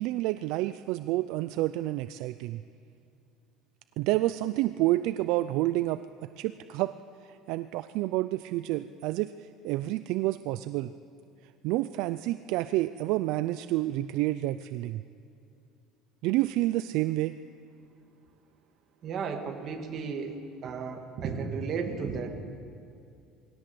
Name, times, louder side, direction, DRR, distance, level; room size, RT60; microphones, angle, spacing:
voice 1, 0.0-2.6 4.0-6.0 6.4-6.9 7.2-10.9 11.6-15.0 16.2-17.3, right 17 dB, 65° right, 13 dB, 0.4 m, -29 dB
voice 2, 19.0-22.4, right 5 dB, 35° right, 4 dB, 1.9 m, -34 dB
20.5 x 17.0 x 7.7 m, 2.5 s
cardioid pair, 160°, 0 cm